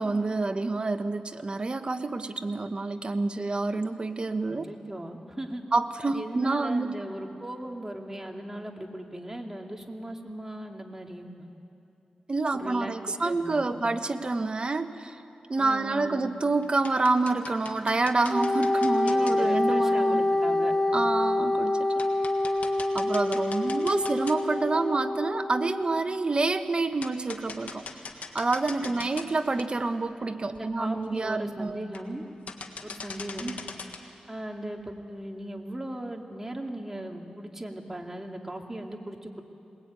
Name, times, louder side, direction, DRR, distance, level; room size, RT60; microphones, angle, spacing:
voice 1, 0.0-4.6 5.7-6.9 12.3-15.2 15.5-20.3 20.9-22.1 22.9-27.8 28.3-31.8 33.4-33.6, right 3 dB, 40° right, 8 dB, 1.2 m, -28 dB
voice 2, 4.5-5.6 6.1-11.5 12.5-12.9 13.2-13.8 15.6-16.3 19.0-21.1 28.8-28.9 30.5-32.2 32.8-33.5 34.3-39.4, right 1 dB, 15° right, 2 dB, 2.5 m, -38 dB
sound 1, 15.9-16.3 16.6-19.4 20.5-20.6 21.1-21.2 21.6-21.7 22.0-24.7 25.1-25.2 26.4-26.5 27.0-29.3 29.6-29.7 30.2-30.3 30.5-30.6 30.9-31.2 31.8-32.2 32.5-34.0, left 4 dB, 80° left, 1.7 m, -41 dB
Wind instrument woodwind instrument, 18.3-26.0, left 2 dB, 20° left, 1.5 m, -26 dB
21.5 x 21.0 x 9.2 m, 2.7 s
cardioid pair, 70°, 3 cm